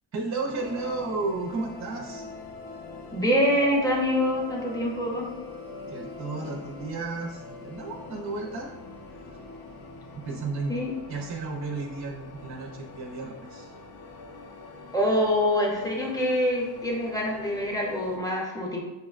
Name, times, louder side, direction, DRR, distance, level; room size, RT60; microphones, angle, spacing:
voice 1, 0.1-2.3 5.9-8.7 10.1-10.8 11.1-13.7, right 3 dB, 40° right, 1 dB, 0.4 m, -33 dB
sound 1, 0.5-18.2, left 3 dB, 50° left, 0.5 m, -43 dB
voice 2, 3.1-5.3 10.7-10.9 14.9-18.8, equal, 10° left, -3 dB, 0.6 m, -25 dB
5.3 x 2.1 x 2.3 m, 1.1 s
wide cardioid pair, 130°, 46 cm